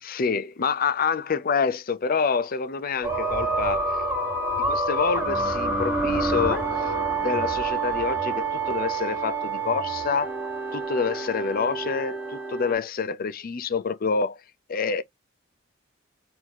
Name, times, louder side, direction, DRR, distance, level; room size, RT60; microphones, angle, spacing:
voice 1, 0.0-4.0 4.7-6.9 7.2-10.3 10.7-14.4 14.7-15.0, left 5 dB, 50° left, 0.5 m, -27 dB
sound 1, 3.0-12.7, right 3 dB, 10° right, 1.2 m, -27 dB
4.6 x 2.7 x 3.6 m
head